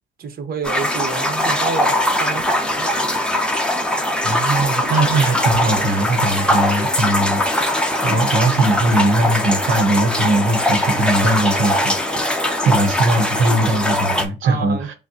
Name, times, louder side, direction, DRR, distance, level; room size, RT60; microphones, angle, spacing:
voice 1, 0.2-3.2 14.4-14.9, right 5 dB, 50° right, 0.9 m, -29 dB
sound 1, 0.6-14.2, left 1 dB, 5° left, 0.8 m, -20 dB
voice 2, 4.2-14.9, right 2 dB, 80° right, 0.9 m, -20 dB
6.1 x 2.1 x 2.8 m
cardioid pair, 90°, 20 cm